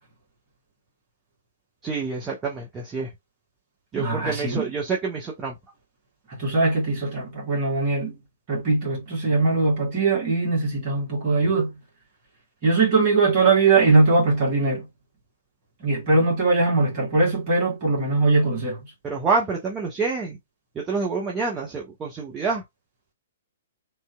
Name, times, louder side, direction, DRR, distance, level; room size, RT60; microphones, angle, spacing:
voice 1, 1.8-3.1 3.9-5.5 19.0-20.4 20.7-22.6, right 4 dB, 15° right, 0.7 m, -27 dB
voice 2, 3.9-4.6 6.3-8.2 8.5-11.7 12.6-14.9 15.8-18.8, right 3 dB, 35° right, 1.7 m, -21 dB
3.2 x 2.8 x 2.2 m
figure-of-eight pair, 115°, 0 cm